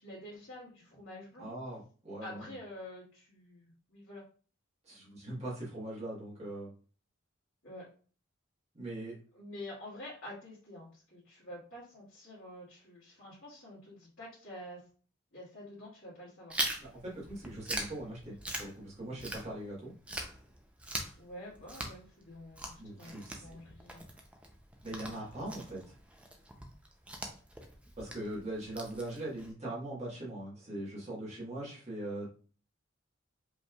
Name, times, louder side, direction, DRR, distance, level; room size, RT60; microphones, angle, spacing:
voice 1, 0.0-1.5 2.2-4.2 7.6-7.8 9.3-14.8 15.3-16.6 21.2-24.1, left 1 dB, 65° left, -10 dB, 1.9 m, -48 dB
voice 2, 1.4-2.5 4.8-6.7 8.7-9.2 16.8-19.9 22.8-23.5 24.8-25.9 28.0-32.3, right 1 dB, 30° right, -6 dB, 1.5 m, -41 dB
Chewing mastication, 16.5-19.8 20.1-29.5, right 1 dB, 5° right, 0.5 m, -41 dB
5.2 x 3.3 x 2.3 m, 0.40 s
head